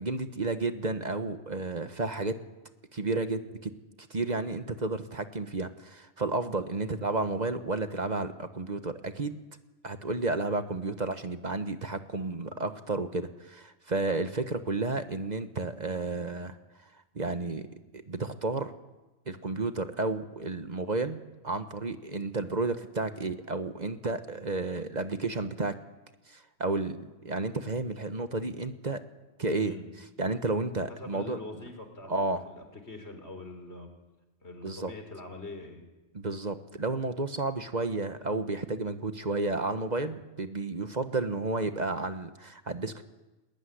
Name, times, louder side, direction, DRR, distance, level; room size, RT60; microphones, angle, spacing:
voice 1, 0.0-2.4 2.9-3.7 4.1-9.4 9.8-16.6 16.8-17.7 17.9-18.7 19.3-21.2 21.4-25.8 26.3-29.0 29.4-29.7 30.2-31.4 32.1-32.4 34.6-34.9 36.1-43.0, right 3 dB, 40° right, 9 dB, 1.2 m, -32 dB
voice 2, 29.5-29.9 30.9-33.9 34.4-35.8, left 2 dB, 75° left, 6 dB, 4.1 m, -43 dB
20.5 x 19.5 x 9.9 m, 1.1 s
omnidirectional pair, 1.1 m